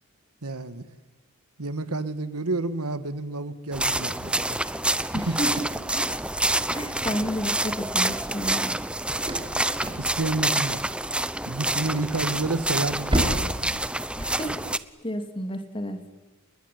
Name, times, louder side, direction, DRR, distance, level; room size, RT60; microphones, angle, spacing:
voice 1, 0.4-0.8 1.6-4.4 4.6-4.7 5.0-5.4 10.0-10.8 11.5-13.8, right 2 dB, 80° right, 12 dB, 1.8 m, -30 dB
sound 1, 3.7-14.8, right 1 dB, 5° right, 0.8 m, -27 dB
voice 2, 5.1-5.7 5.9-6.1 6.4-8.8 14.1-14.6 15.0-16.0, equal, 25° left, 7 dB, 3.1 m, -31 dB
sound 2, 7.6-14.7, equal, 25° right, 5.1 m, -34 dB
29.5 x 21.0 x 9.6 m, 1.1 s
head